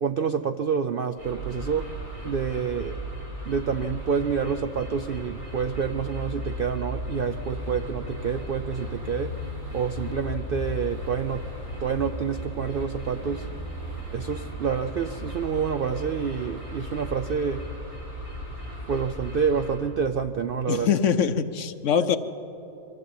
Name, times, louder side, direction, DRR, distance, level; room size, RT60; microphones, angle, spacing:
voice 1, 0.0-1.9 2.2-3.0 3.5-9.4 9.7-11.5 11.8-13.5 14.1-17.7 18.9-20.9, right 6 dB, 65° right, 9 dB, 0.5 m, -28 dB
sound 1, 1.2-19.8, equal, 90° right, 7.4 m, -36 dB
voice 2, 20.7-22.2, left 7 dB, 60° left, 11 dB, 1.0 m, -23 dB
23.5 x 14.0 x 8.4 m, 3.0 s
omnidirectional pair, 1.5 m